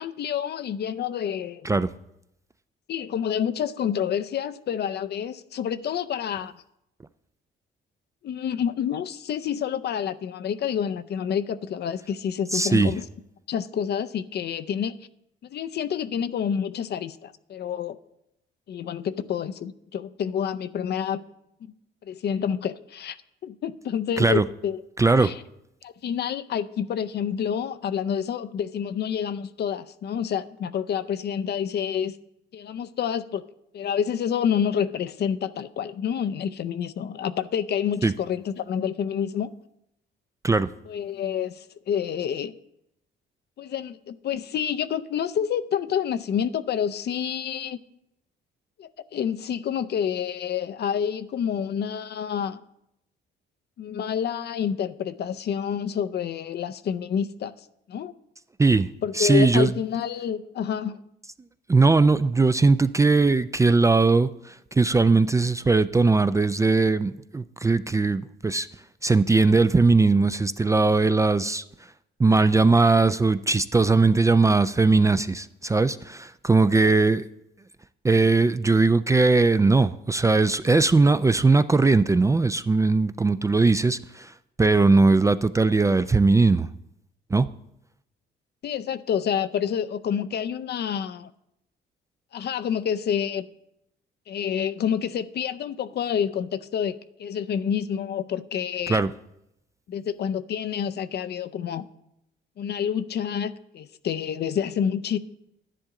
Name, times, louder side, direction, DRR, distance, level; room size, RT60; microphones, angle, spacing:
voice 1, 0.0-1.7 2.9-6.5 8.2-13.0 13.5-15.0 15.4-18.0 18.7-21.2 22.1-23.2 23.4-24.8 25.2-25.4 25.8-32.2 32.5-33.4 33.7-39.5 40.9-42.5 43.6-47.8 48.8-52.6 53.8-57.5 57.9-58.1 59.0-61.0 88.6-91.3 92.3-93.4 94.3-99.0 99.9-101.9 102.6-105.2, left 8 dB, 55° left, 0.5 m, -28 dB
voice 2, 12.5-12.9 24.2-24.4 25.0-25.3 38.0-38.1 40.4-40.7 58.6-58.9 59.1-59.7 61.7-68.7 69.0-71.6 72.2-77.2 78.0-84.3 84.6-86.7 87.3-87.5 98.9-99.1, right 3 dB, 15° right, 0.3 m, -20 dB
10.0 x 10.0 x 3.7 m
cardioid pair, 90°, 20 cm